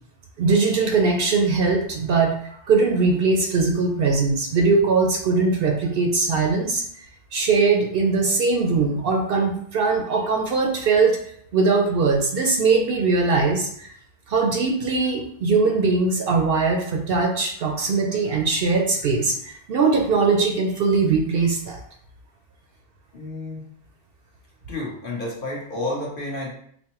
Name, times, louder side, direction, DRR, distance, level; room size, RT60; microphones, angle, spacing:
voice 1, 0.4-6.8 7.3-11.2 11.5-13.9 14.3-21.8, right 4 dB, 65° right, 2 dB, 0.7 m, -21 dB
voice 2, 23.1-23.6 24.7-26.5, left 2 dB, 50° left, -3 dB, 1.0 m, -30 dB
5.1 x 2.0 x 2.9 m, 0.65 s
omnidirectional pair, 1.2 m